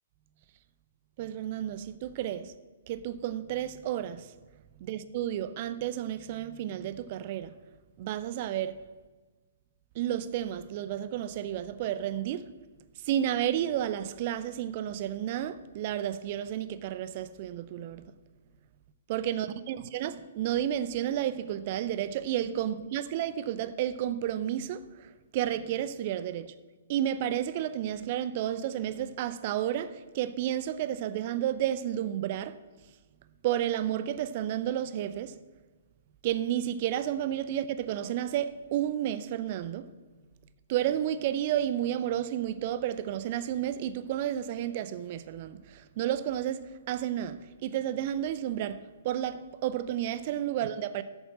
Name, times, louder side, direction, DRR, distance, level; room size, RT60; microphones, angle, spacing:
voice 1, 1.2-2.5 2.9-4.3 4.8-7.5 8.0-8.8 9.9-12.5 13.0-18.1 19.1-26.5 26.9-32.6 33.4-35.3 36.2-39.9 40.7-51.0, right 11 dB, 40° right, 0.5 m, -31 dB
8.1 x 7.4 x 8.7 m
figure-of-eight pair, 120°, 0 cm